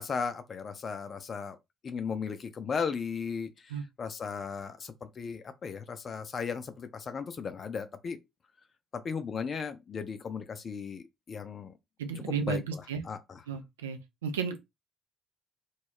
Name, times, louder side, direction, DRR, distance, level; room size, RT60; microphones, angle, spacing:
voice 1, 0.0-1.6 1.8-3.7 4.0-8.2 8.9-11.7 12.5-13.4, left 6 dB, 45° left, 0.5 m, -36 dB
voice 2, 12.0-13.0 13.5-14.6, right 6 dB, 80° right, 0.4 m, -34 dB
2.3 x 2.2 x 3.4 m
figure-of-eight pair, 45°, 0 cm